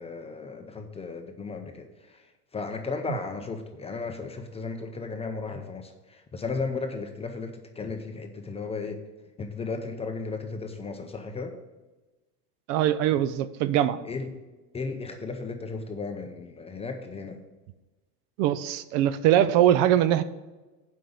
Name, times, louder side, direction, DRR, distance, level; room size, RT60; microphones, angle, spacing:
voice 1, 0.0-2.2 2.5-9.0 9.4-11.5 14.0-14.3 14.7-17.4, left 4 dB, 15° left, 5 dB, 0.6 m, -35 dB
voice 2, 12.7-14.0 18.4-20.2, right 11 dB, 50° right, 14 dB, 0.5 m, -22 dB
7.5 x 5.2 x 7.0 m, 1.2 s
supercardioid pair, 130°, 48 cm